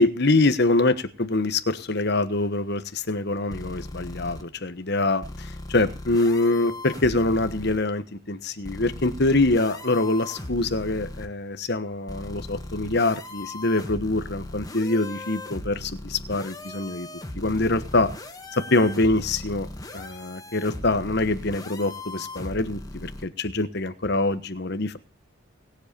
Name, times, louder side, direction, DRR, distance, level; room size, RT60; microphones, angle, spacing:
voice 1, 0.0-17.1 17.4-18.1 18.5-19.7 19.9-25.0, left 2 dB, 55° left, 11 dB, 1.3 m, -24 dB
sound 1, 3.5-4.4 5.2-7.8 8.6-11.3 12.1-23.3, left 1 dB, 20° left, 1.6 m, -38 dB
20.0 x 7.8 x 6.9 m, 0.36 s
head